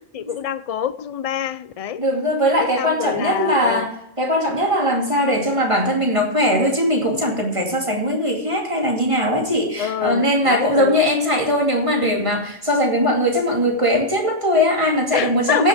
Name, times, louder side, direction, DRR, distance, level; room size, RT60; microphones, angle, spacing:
voice 1, 0.1-2.0 2.6-3.9 9.8-11.0 15.1-15.7, left 9 dB, 65° left, 0.3 m, -26 dB
voice 2, 2.0-3.9 4.2-15.7, equal, 25° right, 2.5 m, -20 dB
16.0 x 6.3 x 4.9 m
omnidirectional pair, 1.3 m